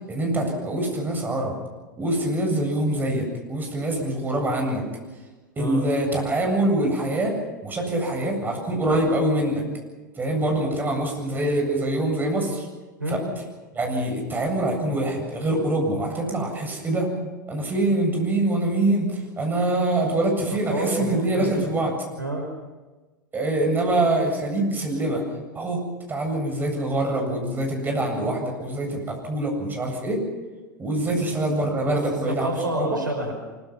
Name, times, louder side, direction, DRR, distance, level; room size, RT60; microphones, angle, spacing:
voice 1, 0.1-1.6 2.0-4.8 5.6-7.3 7.6-9.6 10.2-12.7 13.1-13.2 13.7-17.1 17.5-21.9 23.3-25.2 25.5-25.8 26.1-30.2 30.8-32.9, right 1 dB, 20° right, 2 dB, 7.8 m, -24 dB
voice 2, 5.6-5.9 13.0-13.3 20.7-21.7 22.2-22.5 31.0-31.1 31.9-32.0 32.3-33.5, right 1 dB, 85° right, 3 dB, 5.7 m, -29 dB
24.5 x 23.0 x 5.9 m, 1.3 s
figure-of-eight pair, 90°, 10 cm